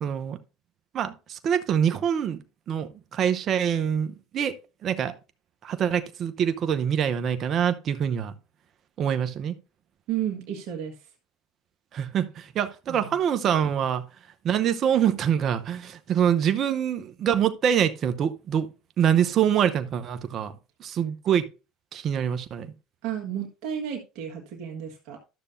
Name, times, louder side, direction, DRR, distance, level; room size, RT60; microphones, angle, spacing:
voice 1, 0.0-0.4 0.9-2.4 2.7-4.6 4.8-5.1 5.6-8.3 9.0-9.5 11.9-14.0 14.4-18.7 19.0-21.5 21.9-22.7, right 8 dB, 50° right, 0.8 m, -25 dB
voice 2, 10.1-11.1 12.9-13.1 23.0-25.2, right 9 dB, 65° right, 1.5 m, -32 dB
12.0 x 6.7 x 2.6 m
hypercardioid pair, 80°, 0 cm